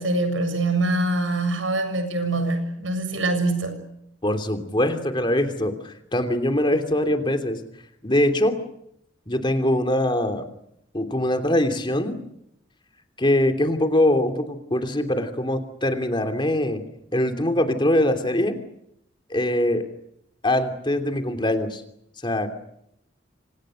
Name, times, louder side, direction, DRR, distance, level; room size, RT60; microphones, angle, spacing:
voice 1, 0.0-3.8, right 2 dB, 85° right, 9 dB, 7.0 m, -24 dB
voice 2, 4.2-7.6 8.0-8.5 9.3-10.5 10.9-12.2 13.2-16.8 17.1-18.6 19.3-19.8 20.4-21.8 22.2-22.5, left 1 dB, 25° left, 7 dB, 3.0 m, -22 dB
30.0 x 26.0 x 6.5 m, 0.75 s
head